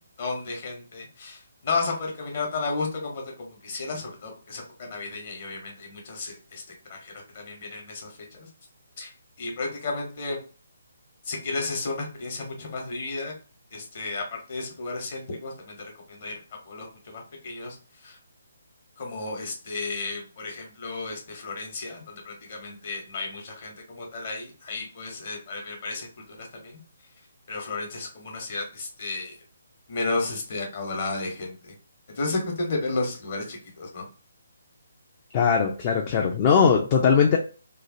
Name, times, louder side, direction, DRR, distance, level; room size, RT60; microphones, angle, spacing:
voice 1, 0.0-6.6 6.9-8.1 9.0-9.1 9.4-10.4 11.2-13.3 13.7-15.8 16.1-16.3 16.7-17.8 18.0-18.2 19.0-26.8 27.5-29.3 29.9-31.8 32.1-34.1, left 3 dB, 45° left, 1 dB, 1.1 m, -33 dB
voice 2, 35.3-37.4, left 6 dB, 30° left, 1 dB, 0.4 m, -20 dB
2.9 x 2.4 x 2.6 m, 0.37 s
figure-of-eight pair, 140°, 0 cm